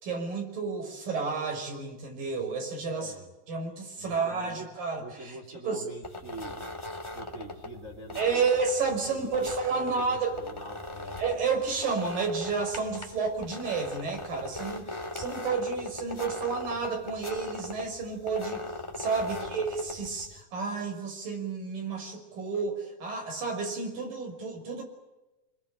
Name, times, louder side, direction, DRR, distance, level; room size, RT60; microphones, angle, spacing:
voice 1, 0.0-3.1 3.5-5.9 8.2-10.4 11.2-18.6 19.0-24.8, right 4 dB, 65° right, 3 dB, 7.4 m, -31 dB
voice 2, 2.9-3.3 4.0-4.7 5.0-6.8 7.1-8.5 9.1-11.2 19.2-19.6, right 2 dB, 20° right, 1 dB, 3.4 m, -44 dB
sound 1, 6.0-20.4, left 2 dB, 10° left, 2.3 m, -40 dB
26.5 x 21.5 x 9.0 m, 1.0 s
omnidirectional pair, 4.2 m